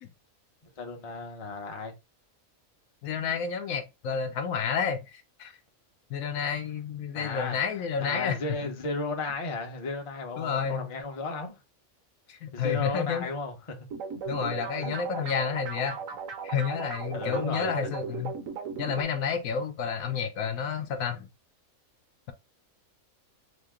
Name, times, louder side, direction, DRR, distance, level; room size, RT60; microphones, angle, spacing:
voice 1, 0.8-1.9 7.1-7.6 8.0-11.6 12.5-13.9 14.4-14.9 17.1-17.7, left 3 dB, 35° left, 0.6 m, -35 dB
voice 2, 3.0-5.6 6.1-8.6 10.4-10.9 12.3-13.3 14.3-16.0 16.4-18.4 18.8-21.3, left 6 dB, 80° left, 1.1 m, -30 dB
sound 1, 13.9-19.0, right 6 dB, 70° right, 1.0 m, -37 dB
2.9 x 2.8 x 3.5 m
omnidirectional pair, 1.5 m